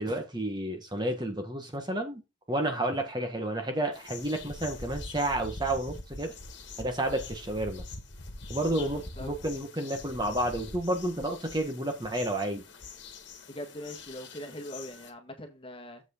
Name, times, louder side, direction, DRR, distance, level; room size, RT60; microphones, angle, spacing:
voice 1, 0.0-2.2 2.5-6.3 6.8-7.8 8.5-12.6, right 1 dB, 20° right, 1.5 m, -31 dB
sound 1, 3.9-15.1, left 3 dB, 60° left, 1.7 m, -44 dB
voice 2, 13.5-16.0, equal, 25° left, 1.7 m, -41 dB
7.6 x 6.2 x 4.5 m
head